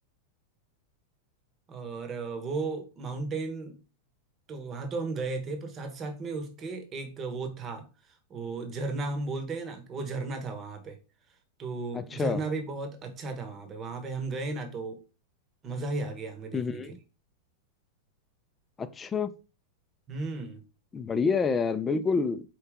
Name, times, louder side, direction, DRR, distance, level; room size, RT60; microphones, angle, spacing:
voice 1, 1.7-3.8 4.5-7.9 8.3-11.0 11.6-15.0 15.6-16.8 20.1-20.6, right 3 dB, 30° right, 1.1 m, -35 dB
voice 2, 11.9-12.4 16.5-17.0 18.8-19.3 20.9-22.4, left 5 dB, 20° left, 0.5 m, -28 dB
4.7 x 2.8 x 3.6 m
hypercardioid pair, 105°, 0 cm